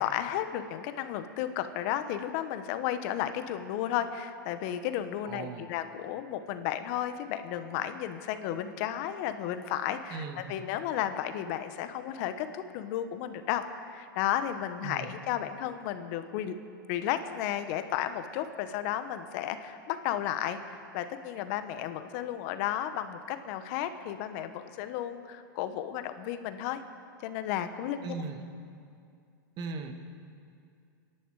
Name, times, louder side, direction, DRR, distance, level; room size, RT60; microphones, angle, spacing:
voice 1, 0.0-16.5 16.9-26.8 27.2-28.2, left 11 dB, 50° left, 10 dB, 1.2 m, -33 dB
voice 2, 5.2-5.7 10.1-10.4 14.8-15.1 28.0-28.4 29.6-29.9, right 5 dB, 35° right, 5 dB, 1.7 m, -37 dB
25.5 x 11.0 x 4.9 m, 2.4 s
hypercardioid pair, 125°, 12 cm